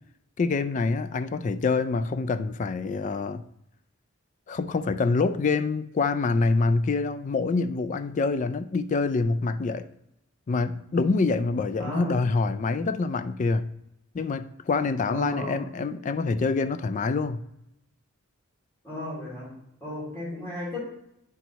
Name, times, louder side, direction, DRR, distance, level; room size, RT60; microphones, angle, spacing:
voice 1, 0.4-3.4 4.5-9.9 10.5-13.7 14.1-17.4, left 3 dB, 35° left, 0.3 m, -26 dB
voice 2, 11.8-12.1 15.1-15.6 18.8-19.5 19.8-20.8, left 1 dB, 15° left, 2.7 m, -34 dB
9.1 x 4.6 x 4.1 m
head